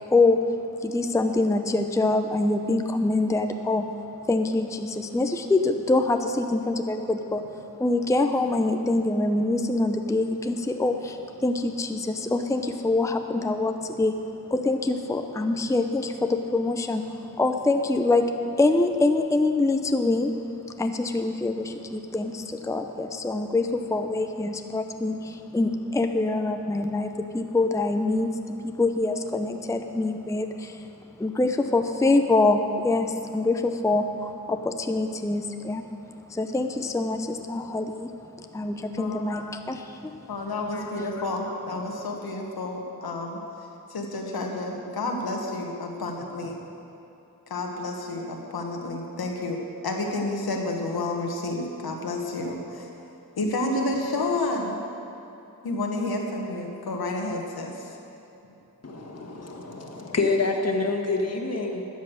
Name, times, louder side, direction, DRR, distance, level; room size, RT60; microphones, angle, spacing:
voice 1, 0.1-0.4 0.8-3.9 4.3-7.4 7.8-14.2 14.5-20.3 20.7-30.9 31.2-35.8 36.3-38.1 38.4-40.2 40.7-40.9, left 2 dB, 10° left, 6 dB, 0.6 m, -25 dB
voice 2, 39.0-39.3 40.3-43.4 43.9-46.6 47.5-49.6 49.8-52.9 53.4-54.8 55.6-57.9, left 2 dB, 90° left, 1 dB, 1.4 m, -30 dB
voice 3, 58.8-61.9, left 3 dB, 45° left, 2 dB, 1.6 m, -27 dB
12.5 x 8.2 x 6.4 m, 2.8 s
cardioid pair, 65°, 36 cm